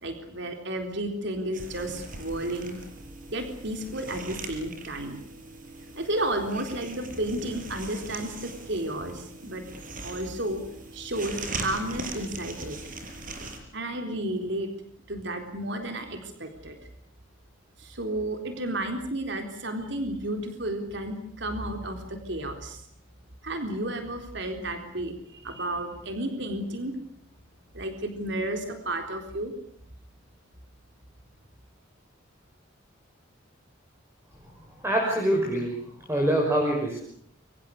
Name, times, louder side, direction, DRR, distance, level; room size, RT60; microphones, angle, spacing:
voice 1, 0.0-2.7 3.3-5.2 6.0-9.6 10.0-10.6 10.9-12.8 13.7-14.7 15.1-16.8 17.8-22.8 23.4-27.0 27.7-29.5, right 1 dB, 60° right, 5 dB, 3.9 m, -32 dB
sound 1, 1.5-13.6, right 2 dB, 45° right, 6.0 m, -40 dB
voice 2, 34.8-35.7 36.1-37.0, right 1 dB, 15° right, 0 dB, 6.0 m, -24 dB
29.5 x 25.0 x 6.6 m, 0.64 s
head